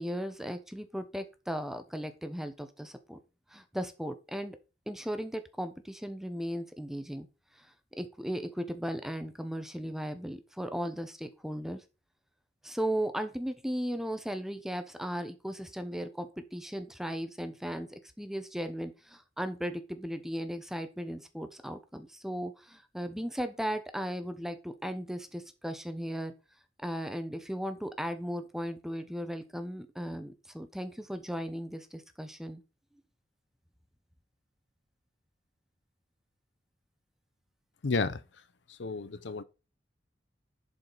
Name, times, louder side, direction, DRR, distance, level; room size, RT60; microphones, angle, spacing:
voice 1, 0.0-3.2 3.5-4.6 4.9-7.3 7.6-7.7 8.0-11.8 12.6-26.3 26.8-32.6, equal, ahead, 0.9 m, -36 dB
voice 2, 37.8-38.2 38.7-39.4, left 3 dB, 75° left, 0.7 m, -31 dB
11.5 x 5.0 x 4.0 m
head